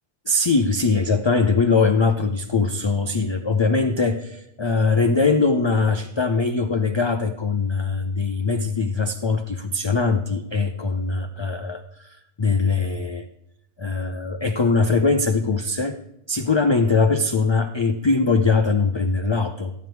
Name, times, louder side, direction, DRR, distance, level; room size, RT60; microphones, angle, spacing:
voice 1, 0.3-13.3 13.8-16.0 16.3-19.7, left 4 dB, 40° left, 7 dB, 0.4 m, -21 dB
13.0 x 9.5 x 4.6 m, 0.84 s
omnidirectional pair, 1.2 m